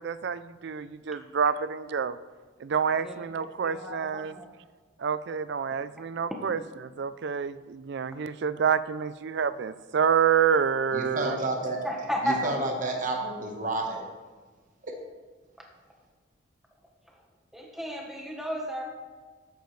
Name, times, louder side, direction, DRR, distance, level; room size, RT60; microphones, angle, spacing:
voice 1, 0.0-2.2 2.6-4.3 5.0-11.4, right 7 dB, 55° right, 15 dB, 0.4 m, -28 dB
voice 2, 3.6-4.5 6.3-6.4 11.8-12.5 15.6-15.7 17.5-18.8, equal, ahead, -1 dB, 1.1 m, -33 dB
voice 3, 10.9-11.8 12.2-14.1 14.8-14.9, right 2 dB, 40° right, 2 dB, 1.2 m, -30 dB
13.5 x 9.2 x 3.2 m, 1.4 s
head